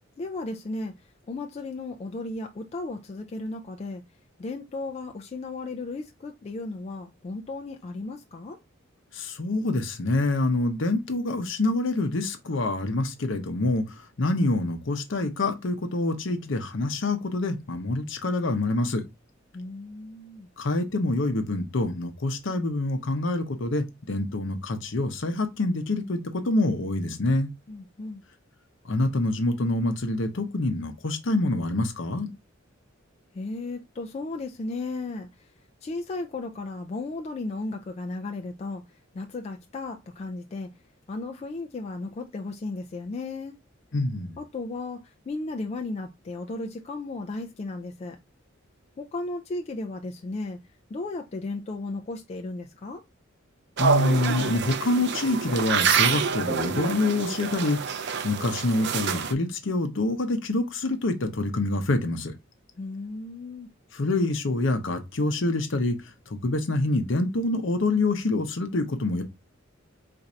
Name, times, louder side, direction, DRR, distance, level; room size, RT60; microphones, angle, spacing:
voice 1, 0.2-0.9 1.3-4.0 4.4-8.6 19.5-20.5 27.7-28.2 33.3-35.5 35.8-38.8 39.1-40.7 41.1-43.5 44.4-48.2 49.0-50.6 50.9-53.0 62.8-63.7, left 2 dB, 30° left, 0.3 m, -35 dB
voice 2, 9.1-13.8 14.2-19.0 20.6-27.5 28.8-32.3 43.9-44.4 53.8-62.3 63.9-66.0 66.3-69.2, left 2 dB, 65° left, 0.7 m, -26 dB
sound 1, 53.8-59.3, right 6 dB, 60° right, 0.4 m, -27 dB
4.2 x 2.6 x 2.5 m
head